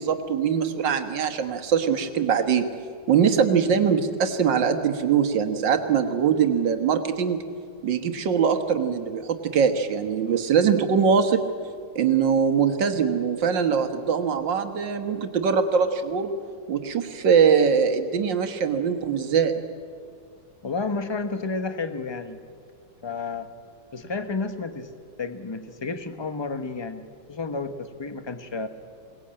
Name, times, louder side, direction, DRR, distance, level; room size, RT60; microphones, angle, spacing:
voice 1, 0.0-2.7 3.1-7.4 7.8-11.4 12.0-16.3 16.7-19.5, right 6 dB, 85° right, 8 dB, 2.0 m, -22 dB
voice 2, 20.6-22.4 23.0-23.5 23.9-24.9 25.2-28.7, left 4 dB, 20° left, 9 dB, 0.7 m, -31 dB
22.0 x 18.5 x 8.7 m, 2.4 s
omnidirectional pair, 1.9 m